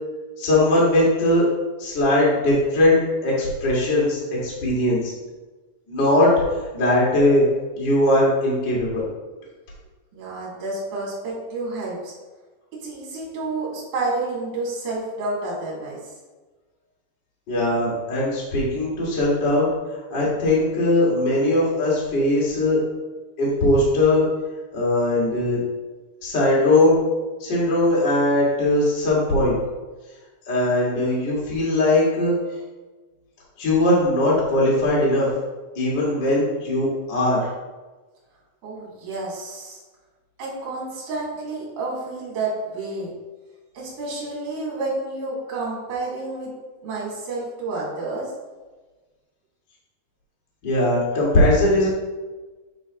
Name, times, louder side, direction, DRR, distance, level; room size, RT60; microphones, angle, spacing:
voice 1, 0.4-1.5 1.8-5.1 5.9-6.3 6.7-7.4 7.7-9.0 17.5-19.7 20.1-22.8 23.4-24.2 24.7-25.6 26.2-27.0 27.4-29.6 30.5-32.3 33.6-35.3 35.7-37.4 50.6-51.9, left 1 dB, 45° left, -6 dB, 1.5 m, -20 dB
voice 2, 10.1-12.1 12.8-16.0 38.6-39.8 40.4-43.1 43.7-46.5 46.8-48.3, right 2 dB, 50° right, -4 dB, 3.1 m, -30 dB
8.5 x 4.0 x 3.9 m, 1.3 s
omnidirectional pair, 5.1 m